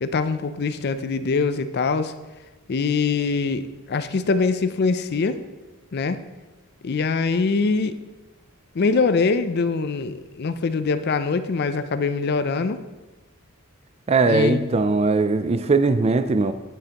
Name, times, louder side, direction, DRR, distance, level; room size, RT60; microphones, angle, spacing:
voice 1, 0.0-2.1 2.7-5.4 5.9-6.2 6.8-8.0 8.7-12.8 14.3-14.8, left 4 dB, 50° left, 12 dB, 0.4 m, -23 dB
voice 2, 14.1-16.5, right 3 dB, 30° right, 11 dB, 0.3 m, -20 dB
9.1 x 7.6 x 2.9 m, 1.2 s
head